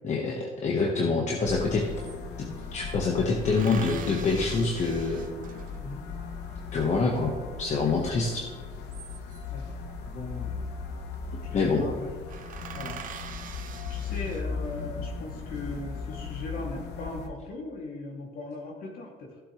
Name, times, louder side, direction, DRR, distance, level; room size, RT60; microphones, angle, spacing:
voice 1, 0.0-1.8 2.4-5.3 6.7-8.4 11.5-11.8, left 4 dB, 45° left, -1 dB, 1.4 m, -26 dB
sound 1, 1.3-1.4 1.6-2.7 3.4-6.0 8.6-9.6 10.8-11.2 11.5-11.6 11.9-12.0 12.3-14.8 15.4-16.1, right 8 dB, 55° right, 0.9 m, -44 dB
sound 2, 1.5-17.3, left 5 dB, 90° left, 1.1 m, -37 dB
voice 2, 10.0-10.7 11.8-12.1 12.7-13.3 13.9-19.4, left 2 dB, 60° left, -1 dB, 2.7 m, -39 dB
15.0 x 7.7 x 3.2 m, 1.4 s
cardioid pair, 110°, 17 cm